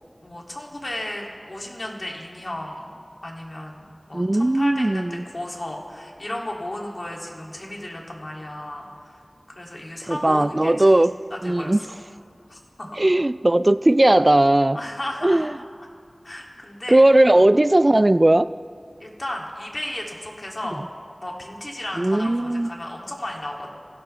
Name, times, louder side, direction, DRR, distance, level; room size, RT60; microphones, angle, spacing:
voice 1, 0.2-2.8 3.2-9.2 9.5-10.7 11.3-11.8 12.5-13.0 14.7-15.5 16.2-17.0 19.0-20.8 21.2-23.7, left 1 dB, 60° left, -1 dB, 2.6 m, -34 dB
voice 2, 4.1-5.2 10.0-11.8 13.0-14.8 15.2-15.5 16.9-18.5 22.0-22.7, right 1 dB, 40° right, 14 dB, 0.3 m, -18 dB
24.5 x 16.5 x 3.4 m, 2.2 s
wide cardioid pair, 40°, 0 cm